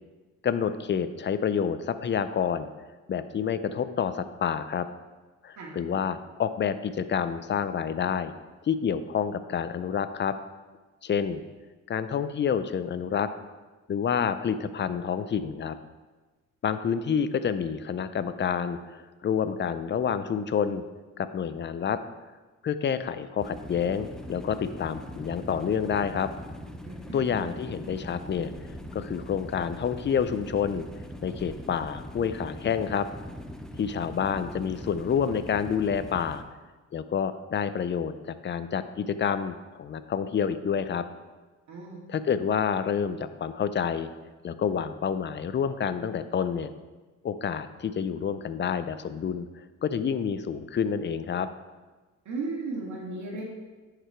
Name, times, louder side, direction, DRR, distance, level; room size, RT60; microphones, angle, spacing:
voice 1, 0.4-2.7 3.1-4.9 5.4-8.3 8.6-10.3 11.0-11.4 11.9-13.3 13.9-15.8 16.6-20.8 21.2-22.0 22.6-26.3 27.1-28.5 28.9-30.9 31.2-33.1 33.8-36.4 36.9-41.0 42.1-44.1 44.4-46.7 47.2-51.5, left 7 dB, 40° left, 12 dB, 0.6 m, -28 dB
sound 1, 23.4-36.4, equal, ahead, 0.7 m, -41 dB
voice 2, 26.9-27.3 41.7-42.0 52.3-53.4, right 3 dB, 70° right, -2 dB, 2.2 m, -35 dB
10.0 x 5.0 x 4.5 m, 1.2 s
cardioid pair, 90°, 30 cm